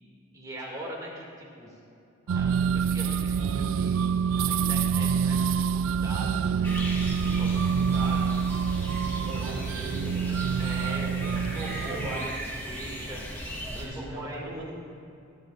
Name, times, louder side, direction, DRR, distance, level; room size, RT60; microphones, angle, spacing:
voice 1, 0.3-1.7 2.3-4.1 4.4-8.8 9.1-9.7 10.6-14.7, right 1 dB, 20° right, -4 dB, 2.2 m, -41 dB
sound 1, 2.3-12.4, right 7 dB, 80° right, 0.3 m, -27 dB
sound 2, 6.6-13.9, equal, 10° left, 1.5 m, -37 dB
voice 2, 9.3-10.4 10.8-11.3 11.8-12.2 13.7-14.7, right 1 dB, 60° right, -3 dB, 2.7 m, -39 dB
22.5 x 8.4 x 2.5 m, 2.6 s
head